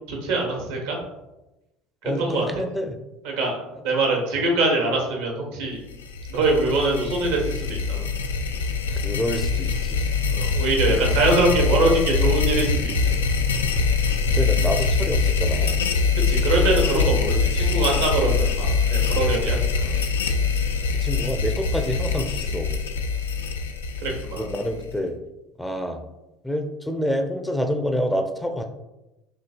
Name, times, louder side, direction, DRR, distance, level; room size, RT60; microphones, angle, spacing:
voice 1, 0.1-1.0 2.2-2.6 3.2-5.8 6.3-8.0 10.3-13.1 16.2-19.9 24.0-24.4, right 2 dB, 75° right, 0 dB, 1.1 m, -23 dB
voice 2, 2.0-3.0 3.7-3.8 8.9-10.1 10.8-11.1 14.3-15.8 16.6-17.0 21.0-22.8 24.4-25.2 25.6-26.0 26.4-28.6, equal, 5° left, 5 dB, 0.5 m, -28 dB
sound 1, 5.9-25.0, left 4 dB, 80° left, 0.3 m, -23 dB
5.9 x 2.7 x 2.4 m, 0.97 s
hypercardioid pair, 65°, 0 cm